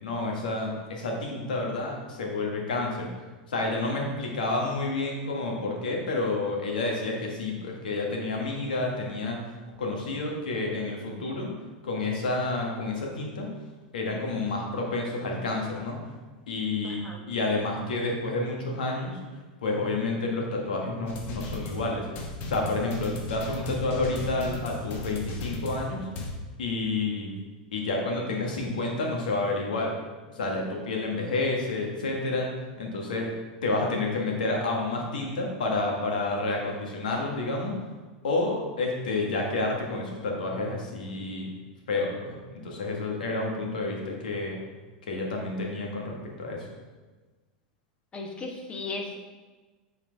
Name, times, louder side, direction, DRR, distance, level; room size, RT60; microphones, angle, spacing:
voice 1, 0.0-3.1 3.5-9.4 9.8-11.5 11.8-13.5 13.9-16.0 16.5-17.0 17.3-19.1 19.6-22.0 22.5-26.1 26.6-27.3 27.7-29.9 30.3-32.5 32.8-33.3 33.6-37.7 38.2-41.5 41.9-44.6 45.1-46.6, left 2 dB, 85° left, 0 dB, 1.6 m, -29 dB
voice 2, 16.8-17.2 48.1-49.2, left 3 dB, 25° left, 1 dB, 1.3 m, -36 dB
sound 1, 21.1-26.3, left 2 dB, 50° left, 1.2 m, -36 dB
8.5 x 4.5 x 3.5 m, 1.3 s
hypercardioid pair, 110°, 4 cm